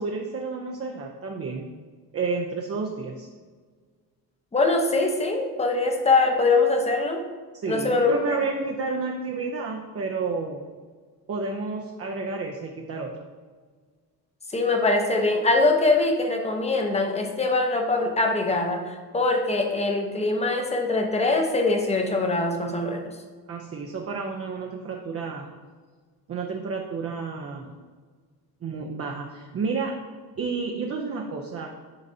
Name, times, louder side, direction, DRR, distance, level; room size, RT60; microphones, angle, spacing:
voice 1, 0.0-1.7 2.1-3.3 7.5-10.6 11.3-13.3 23.5-25.5 26.3-27.7 28.6-29.9 30.4-31.7, right 4 dB, 35° right, 1 dB, 0.6 m, -30 dB
voice 2, 4.5-7.2 7.7-8.1 14.5-18.8 19.1-23.1, left 3 dB, 15° left, 3 dB, 0.8 m, -23 dB
10.5 x 3.9 x 2.7 m, 1.5 s
cardioid pair, 135°, 39 cm